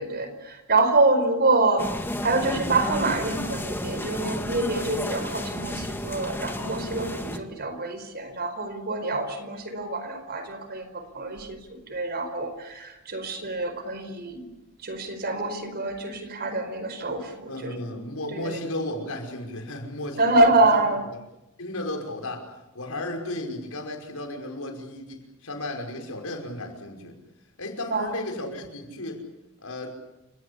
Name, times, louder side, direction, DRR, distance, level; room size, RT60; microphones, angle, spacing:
voice 1, 0.0-1.9 2.2-14.4 14.8-17.7 18.3-18.6 20.2-21.1 27.9-28.1, right 2 dB, 50° right, 9 dB, 4.8 m, -26 dB
sound 1, 1.8-7.4, left 1 dB, 10° left, 1.8 m, -32 dB
voice 2, 17.5-20.8 21.6-27.2 27.6-29.2 29.6-30.0, left 1 dB, 80° left, 3 dB, 5.6 m, -34 dB
30.0 x 18.0 x 8.6 m, 0.95 s
head